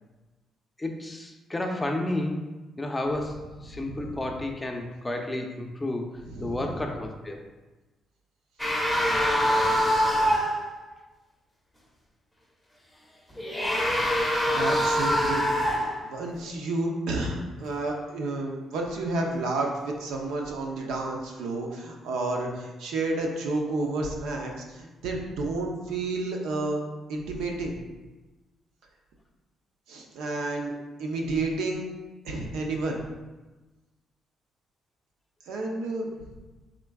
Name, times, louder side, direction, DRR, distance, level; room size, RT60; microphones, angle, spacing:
voice 1, 0.8-2.4 2.8-6.1 6.4-7.4, left 1 dB, 15° left, 2 dB, 0.5 m, -31 dB
voice 2, 3.7-4.1 6.2-6.7 14.5-15.5 16.0-26.8 27.1-27.8 29.9-30.7 31.0-31.9 32.2-33.0 35.5-36.1, right 2 dB, 85° right, 1 dB, 0.6 m, -30 dB
sound 1, 8.6-10.7 13.3-16.1, equal, ahead, 0.9 m, -24 dB
4.3 x 3.7 x 2.3 m, 1.2 s
cardioid pair, 90°, 0 cm